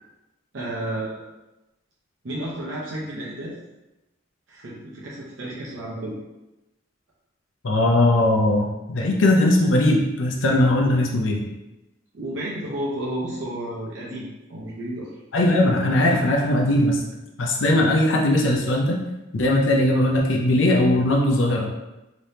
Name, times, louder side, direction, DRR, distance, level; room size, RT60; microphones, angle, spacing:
voice 1, 0.5-1.2 2.2-3.6 4.5-6.2 12.1-15.2, right 1 dB, 75° right, -6 dB, 0.7 m, -32 dB
voice 2, 7.6-11.5 15.3-17.0 17.4-19.0 19.3-21.7, left 1 dB, 85° left, 0 dB, 0.5 m, -19 dB
3.3 x 3.0 x 2.7 m, 0.99 s
head